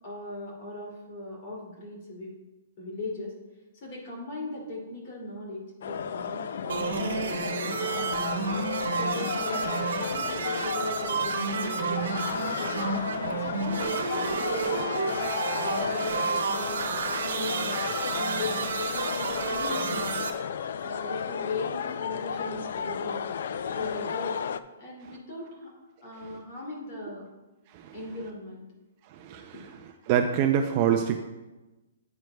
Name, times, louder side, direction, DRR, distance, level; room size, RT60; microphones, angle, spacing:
voice 1, 0.0-2.3 2.8-3.3 3.7-8.4 9.0-12.9 13.3-14.9 15.5-16.9 17.3-17.8 18.1-20.2 20.8-23.2 23.7-24.4 24.8-27.3 27.9-28.6 29.5-29.6, left 2 dB, 35° left, -3 dB, 2.6 m, -38 dB
sound 1, 5.8-24.6, left 7 dB, 60° left, 0.4 m, -33 dB
sound 2, 6.7-20.3, right 5 dB, 70° right, 1.1 m, -31 dB
voice 2, 29.1-29.7 30.1-31.2, right 8 dB, 30° right, 5 dB, 0.4 m, -26 dB
9.4 x 9.1 x 2.3 m, 1.1 s
hypercardioid pair, 170°, 0 cm